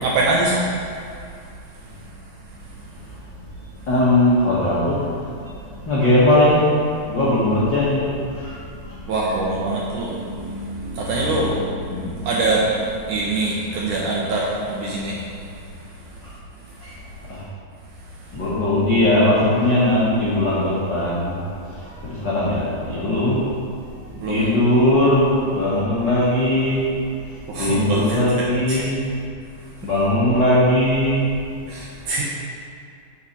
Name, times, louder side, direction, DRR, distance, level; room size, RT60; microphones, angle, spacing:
voice 1, 0.0-0.6 9.1-15.2 24.2-24.5 27.5-28.8 31.7-32.2, right 2 dB, 75° right, -3 dB, 1.9 m, -24 dB
voice 2, 3.9-5.2 5.8-6.7 7.1-8.6 11.4-11.5 11.9-12.0 16.8-16.9 17.3-17.4 18.3-21.4 21.7-23.4 24.3-26.8 27.6-29.1 29.8-31.3, left 1 dB, 70° left, -9 dB, 1.0 m, -19 dB
8.5 x 4.7 x 5.3 m, 2.3 s
omnidirectional pair, 4.3 m